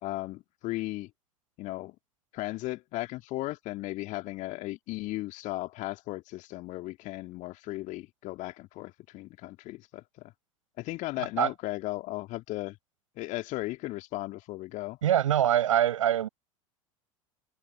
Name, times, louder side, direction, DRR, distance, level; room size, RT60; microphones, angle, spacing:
voice 1, 0.0-1.1 1.6-2.0 2.3-10.3 10.8-12.8 13.2-15.0, left 19 dB, 45° left, 2.3 m, -36 dB
voice 2, 15.0-16.3, right 11 dB, 70° right, 7.7 m, -23 dB
figure-of-eight pair, 75°, 17 cm